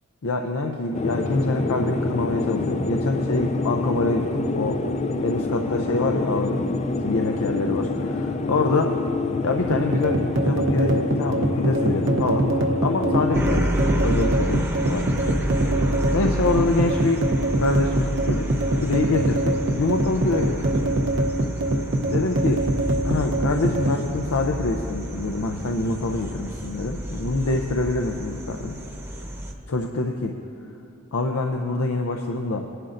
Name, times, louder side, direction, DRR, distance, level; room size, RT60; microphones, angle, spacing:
voice 1, 0.2-4.8 5.2-6.8 7.0-8.9 9.4-12.5 12.8-15.4 16.1-17.2 17.6-18.5 18.8-20.7 22.1-22.6 23.0-28.8 29.7-30.3 31.1-32.7, left 3 dB, 90° left, 3 dB, 0.6 m, -25 dB
sound 1, 0.9-13.6, left 3 dB, 30° left, 0.4 m, -26 dB
sound 2, 9.7-24.0, right 1 dB, 60° right, 0.8 m, -23 dB
sound 3, 13.3-29.5, equal, 10° right, 0.9 m, -30 dB
19.5 x 11.0 x 2.6 m, 2.5 s
head